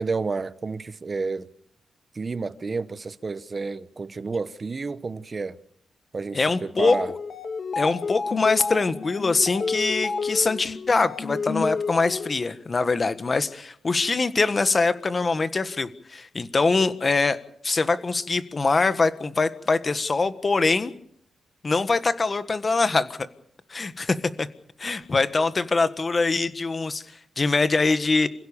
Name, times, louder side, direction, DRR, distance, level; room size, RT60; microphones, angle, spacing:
voice 1, 0.0-1.5 2.1-5.6 6.1-7.1, right 4 dB, 35° right, 1.1 m, -30 dB
voice 2, 6.3-7.0 7.7-17.4 17.6-20.9 21.6-23.2 23.7-24.5 24.8-27.0 27.4-28.3, left 3 dB, 35° left, 1.5 m, -23 dB
sound 1, 6.7-12.5, left 4 dB, 50° left, 2.6 m, -30 dB
27.5 x 16.5 x 7.2 m
cardioid pair, 100°, 0 cm